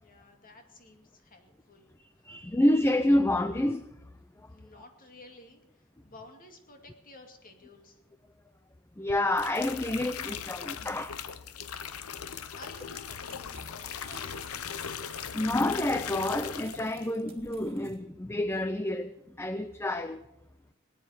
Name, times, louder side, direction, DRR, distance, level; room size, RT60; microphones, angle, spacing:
voice 1, 0.0-2.4 4.5-8.0 11.9-14.4, left 2 dB, 40° left, 4 dB, 2.3 m, -53 dB
voice 2, 2.2-3.9 4.4-4.5 9.0-11.2 11.9-12.0 14.9-15.0 15.3-20.3, left 1 dB, 10° left, 11 dB, 0.5 m, -28 dB
sound 1, 9.1-17.1 17.4-17.8, left 7 dB, 85° left, 0.8 m, -39 dB
sound 2, 12.2-18.0, right 5 dB, 30° right, 2.0 m, -56 dB
18.5 x 9.8 x 6.7 m, 0.89 s
head